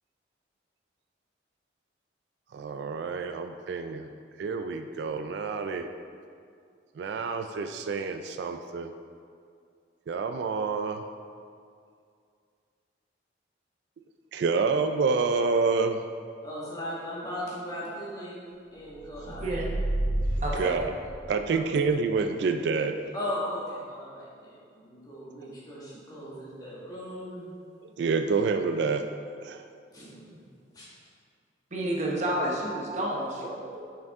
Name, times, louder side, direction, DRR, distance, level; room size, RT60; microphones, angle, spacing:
voice 1, 2.5-4.1 4.4-5.9 7.0-8.9 10.1-11.0 14.3-16.0 20.6-20.9 21.3-23.0 28.0-29.0 29.4-29.6, right 4 dB, 70° right, 7 dB, 0.3 m, -28 dB
voice 2, 16.4-18.4 18.7-19.5 23.1-27.5 29.9-30.4 30.7-30.8, left 1 dB, 20° left, -7 dB, 1.6 m, -37 dB
sound 1, 19.0-21.6, right 1 dB, 80° left, 0.7 m, -30 dB
voice 3, 19.2-19.6 20.4-20.7 21.7-21.8 31.7-34.0, right 1 dB, 40° right, -3 dB, 0.9 m, -30 dB
6.5 x 6.0 x 3.6 m, 2.3 s
head